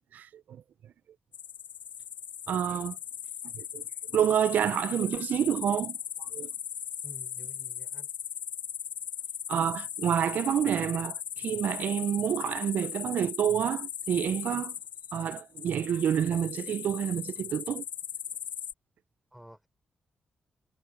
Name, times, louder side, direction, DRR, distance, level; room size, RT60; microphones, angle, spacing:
voice 1, 0.1-0.6 2.5-3.0 3.5-3.8 4.1-6.5 9.5-14.8 15.1-17.8, right 9 dB, 65° right, 0.3 m, -28 dB
sound 1, 1.3-18.7, left 9 dB, 70° left, 0.5 m, -38 dB
voice 2, 7.0-8.1 19.3-19.7, equal, 5° right, 5.3 m, -50 dB
wide cardioid pair, 180°, 3 cm